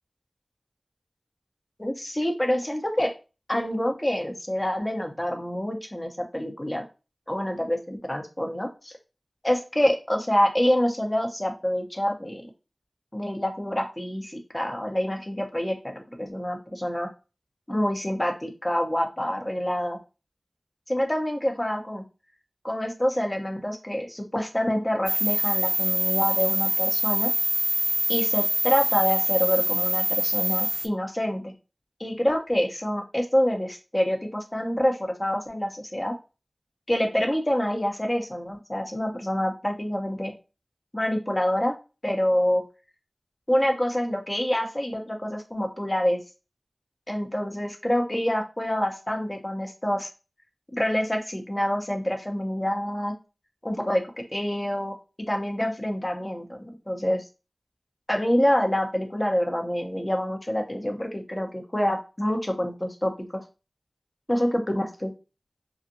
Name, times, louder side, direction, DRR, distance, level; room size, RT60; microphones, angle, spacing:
voice 1, 1.8-3.1 3.5-6.8 7.3-8.9 9.4-12.4 13.1-17.1 17.7-20.0 20.9-22.0 22.6-27.3 28.1-31.5 32.0-36.1 36.9-40.3 40.9-41.8 42.0-42.6 43.5-46.2 47.1-50.1 50.7-53.1 53.6-54.9 55.3-56.6 56.9-57.2 58.1-63.4 64.3-65.1, equal, 25° left, 3 dB, 0.7 m, -26 dB
sound 1, 25.1-30.9, right 1 dB, 40° right, 0.4 m, -25 dB
2.6 x 2.4 x 2.7 m, 0.30 s
wide cardioid pair, 50°, 0 cm